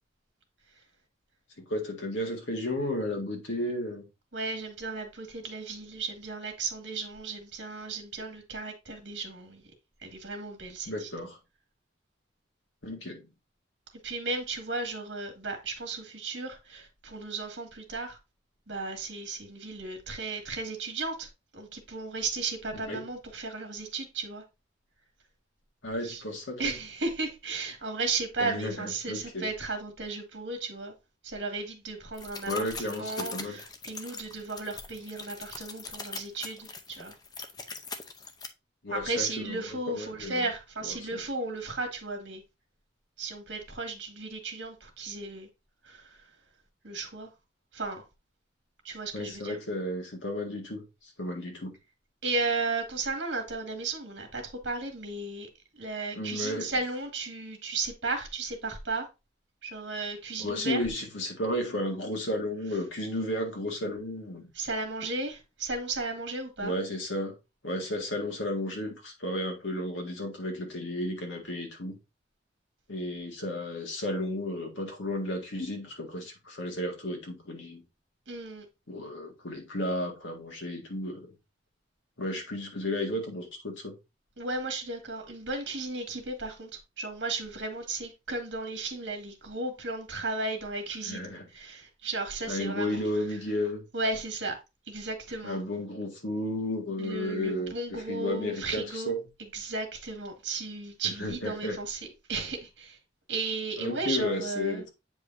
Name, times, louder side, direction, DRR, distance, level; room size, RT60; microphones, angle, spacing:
voice 1, 1.7-4.0 10.9-11.4 12.8-13.2 22.7-23.0 25.8-26.7 28.4-29.5 32.5-33.6 38.8-40.4 40.8-41.2 49.1-51.7 56.2-56.7 60.4-64.5 66.6-67.3 67.6-72.0 72.9-77.8 78.9-81.3 82.2-83.9 91.1-91.4 92.5-93.8 95.4-97.7 98.1-99.2 101.2-101.8 103.8-104.9, left 1 dB, 80° left, 1.8 m, -33 dB
voice 2, 4.3-9.6 10.0-11.1 14.0-18.2 18.7-21.3 21.5-24.4 26.0-26.2 26.6-30.9 31.2-37.1 38.9-42.4 43.2-45.5 45.8-46.2 46.8-47.3 47.7-48.1 48.8-49.6 52.2-55.5 55.7-59.1 59.6-60.9 64.5-66.7 78.3-78.7 84.4-93.4 93.9-94.6 94.9-95.6 97.0-99.1 99.5-102.0 102.3-103.0 103.3-104.8, right 3 dB, 65° right, 1.9 m, -35 dB
sound 1, 32.1-38.5, left 4 dB, 20° left, 0.6 m, -42 dB
8.2 x 4.9 x 2.6 m
head